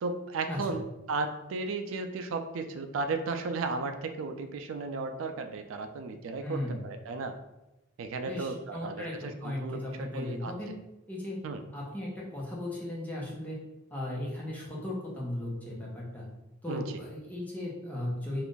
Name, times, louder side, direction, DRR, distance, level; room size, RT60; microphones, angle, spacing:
voice 1, 0.0-7.3 8.0-9.1 9.4-10.5 11.4-11.6 16.7-17.0, right 3 dB, 85° right, 7 dB, 0.3 m, -34 dB
voice 2, 6.4-6.8 8.3-10.7 11.1-11.4 11.7-13.6 13.9-16.3 16.6-18.4, left 1 dB, 10° left, -5 dB, 0.7 m, -36 dB
2.5 x 2.4 x 3.6 m, 0.97 s
head